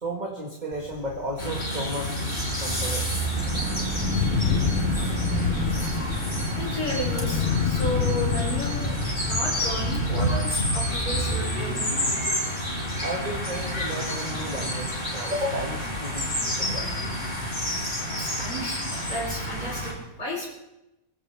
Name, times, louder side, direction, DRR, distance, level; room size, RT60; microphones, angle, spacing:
voice 1, 0.0-2.1 2.6-3.1 13.0-16.3 16.6-17.0, right 1 dB, 30° right, 0 dB, 1.9 m, -33 dB
Thunder, 0.7-18.2, left 8 dB, 55° left, 0.6 m, -32 dB
sound 1, 1.4-19.9, equal, 35° left, 4.3 m, -29 dB
sound 2, 3.3-10.0, right 4 dB, 60° right, 2.0 m, -33 dB
voice 2, 6.6-11.8 16.5-16.8 18.2-20.5, equal, 70° left, -5 dB, 4.5 m, -33 dB
23.5 x 16.0 x 3.4 m, 0.93 s
omnidirectional pair, 1.6 m